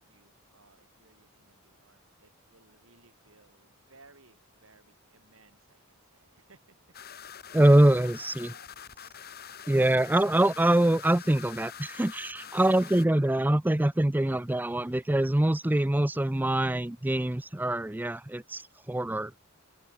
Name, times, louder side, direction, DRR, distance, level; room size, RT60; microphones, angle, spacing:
voice 1, 0.0-6.8 12.2-13.1, right 3 dB, 75° right, 6.5 m, -62 dB
sound 1, 6.9-13.1, left 8 dB, 45° left, 4.6 m, -45 dB
voice 2, 7.5-8.5 9.7-19.3, right 1 dB, 10° right, 0.4 m, -24 dB
open air
head